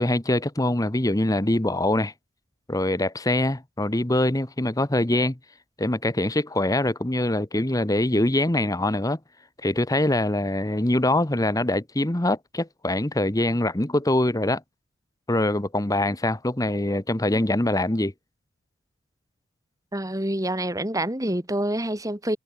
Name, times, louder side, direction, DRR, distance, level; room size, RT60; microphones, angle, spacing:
voice 1, 0.0-2.1 2.7-5.4 5.8-9.2 9.6-14.6 15.3-18.1, left 1 dB, 15° left, 1.0 m, -23 dB
voice 2, 19.9-22.4, right 1 dB, 15° right, 2.6 m, -27 dB
head